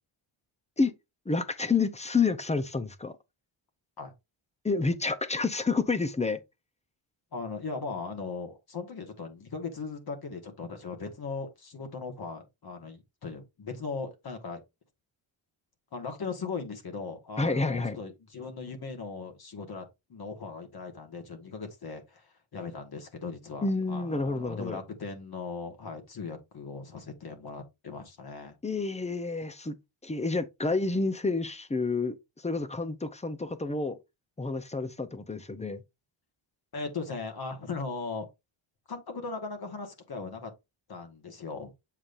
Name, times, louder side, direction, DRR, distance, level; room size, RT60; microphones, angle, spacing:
voice 1, 1.3-3.1 4.6-6.4 17.4-18.0 23.6-24.8 28.6-29.8 30.0-32.2 32.4-34.0 34.4-35.8, left 4 dB, 15° left, 0.6 m, -29 dB
voice 2, 7.3-14.6 15.9-28.5 36.7-38.3 38.9-40.5 40.9-41.7, left 4 dB, 45° left, 1.5 m, -38 dB
7.5 x 5.1 x 2.6 m
cardioid pair, 120°, 50 cm